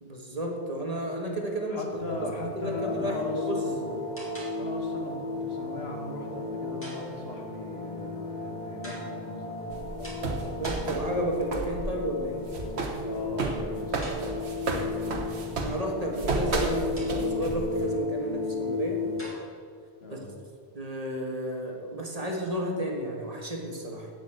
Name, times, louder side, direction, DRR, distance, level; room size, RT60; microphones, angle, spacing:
voice 1, 0.0-1.8 2.2-3.6 10.5-12.4 15.6-19.0 20.1-20.2 20.7-24.1, right 1 dB, 35° right, 1 dB, 1.5 m, -32 dB
voice 2, 1.7-3.9 4.6-10.1 13.0-14.6 20.0-20.3, left 2 dB, 65° left, 1 dB, 1.8 m, -39 dB
sound 1, 1.9-19.2, left 3 dB, 30° left, 2.3 m, -34 dB
sound 2, 3.2-3.6 4.2-5.0 6.8-7.6 8.8-9.4 10.0-11.4 14.0-14.7 17.0-17.6 19.2-19.7, right 1 dB, 10° left, 2.9 m, -47 dB
sound 3, 9.7-11.8 12.1-17.8, right 3 dB, 70° right, 1.4 m, -32 dB
8.3 x 8.0 x 8.0 m, 2.2 s
omnidirectional pair, 1.2 m